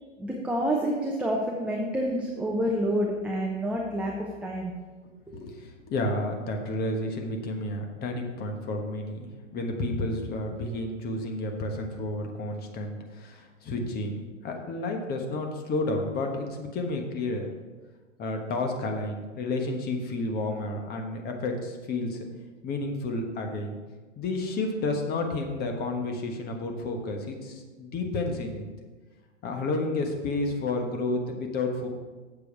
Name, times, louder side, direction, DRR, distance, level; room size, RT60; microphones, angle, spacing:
voice 1, 0.2-4.7, equal, 5° right, -2 dB, 0.8 m, -28 dB
voice 2, 5.3-17.5 18.2-22.3 22.6-23.8 24.2-28.7 29.4-31.9, left 2 dB, 25° left, 3 dB, 1.3 m, -31 dB
8.2 x 7.3 x 4.8 m, 1.3 s
hypercardioid pair, 115°, 38 cm